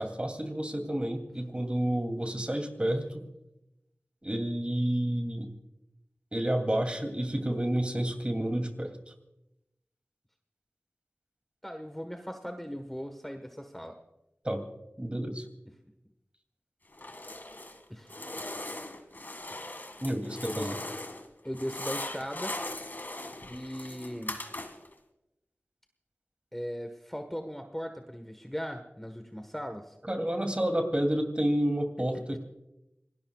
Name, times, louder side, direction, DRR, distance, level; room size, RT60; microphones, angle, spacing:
voice 1, 0.0-3.2 4.2-5.5 6.3-9.0 14.4-14.6 15.0-15.4 20.0-20.8 30.1-32.4, right 1 dB, 25° right, 5 dB, 2.8 m, -30 dB
voice 2, 11.6-14.0 17.9-18.4 19.5-19.6 21.4-22.9 23.5-24.5 26.5-30.0 32.1-32.4, equal, 5° left, 5 dB, 1.4 m, -39 dB
sound 1, 16.9-17.8 18.1-21.3 21.5-24.9, left 1 dB, 50° left, 2.1 m, -39 dB
26.5 x 20.0 x 2.4 m, 0.90 s
wide cardioid pair, 45°, 4 cm